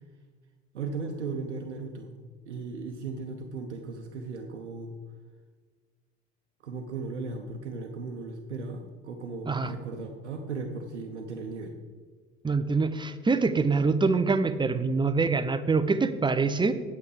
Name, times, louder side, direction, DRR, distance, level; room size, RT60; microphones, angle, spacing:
voice 1, 0.7-2.2 2.5-4.9 6.6-11.7, right 4 dB, 90° right, 3 dB, 0.8 m, -36 dB
voice 2, 12.4-16.7, right 4 dB, 15° right, 11 dB, 0.7 m, -25 dB
8.5 x 8.2 x 4.9 m, 1.5 s
hypercardioid pair, 65°, 34 cm